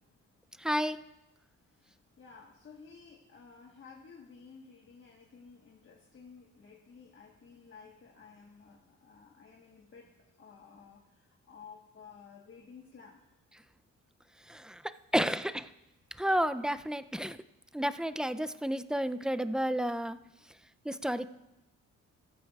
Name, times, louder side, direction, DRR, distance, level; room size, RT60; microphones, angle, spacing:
voice 1, 0.6-1.0 14.5-14.8 15.1-15.7 16.2-17.4 17.7-20.2 20.9-21.3, equal, 5° right, 11 dB, 0.3 m, -31 dB
voice 2, 1.8-10.1 10.4-13.2, left 5 dB, 45° left, 0 dB, 1.3 m, -54 dB
15.0 x 14.0 x 2.3 m, 0.95 s
cardioid pair, 110°, 30 cm